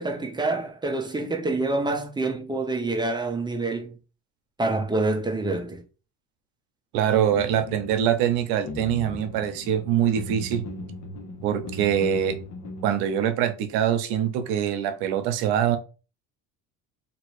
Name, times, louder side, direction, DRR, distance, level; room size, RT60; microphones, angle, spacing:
voice 1, 0.0-4.0 4.6-5.8, right 2 dB, 10° right, 0.7 m, -27 dB
voice 2, 6.9-10.7 11.4-12.4 12.8-15.8, right 9 dB, 80° right, 0.7 m, -24 dB
sound 1, 7.3-12.9, left 1 dB, 50° left, 0.9 m, -38 dB
3.0 x 2.6 x 3.0 m
supercardioid pair, 85°, 38 cm